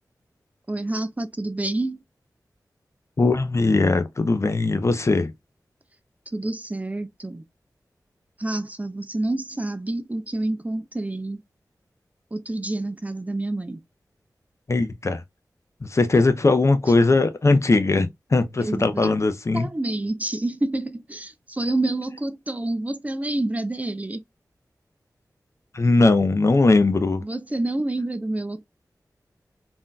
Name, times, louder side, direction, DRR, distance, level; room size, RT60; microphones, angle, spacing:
voice 1, 0.7-2.0 6.3-7.4 8.4-11.4 12.3-13.8 18.6-19.2 19.5-24.2 27.2-28.6, right 2 dB, 20° right, 0.4 m, -28 dB
voice 2, 3.2-5.3 14.7-15.2 15.8-19.7 25.7-27.2, left 3 dB, 45° left, 0.6 m, -20 dB
3.6 x 2.6 x 2.2 m
cardioid pair, 50°, 7 cm